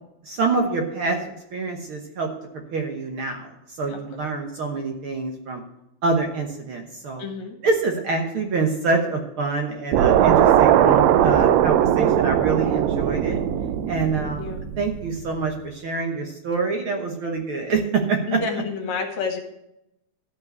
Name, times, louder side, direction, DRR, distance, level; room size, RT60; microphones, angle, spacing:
voice 1, 0.2-1.2 1.5-2.3 2.7-5.6 6.0-7.2 7.6-13.4 13.9-18.4, right 4 dB, 55° right, 3 dB, 1.7 m, -26 dB
voice 2, 7.2-7.6 12.6-12.9 14.2-14.6 17.2-17.3 18.3-19.4, left 5 dB, 65° left, 4 dB, 2.7 m, -30 dB
sound 1, 9.9-15.2, right 10 dB, 75° right, 1.8 m, -19 dB
13.5 x 5.5 x 8.3 m, 0.83 s
omnidirectional pair, 3.5 m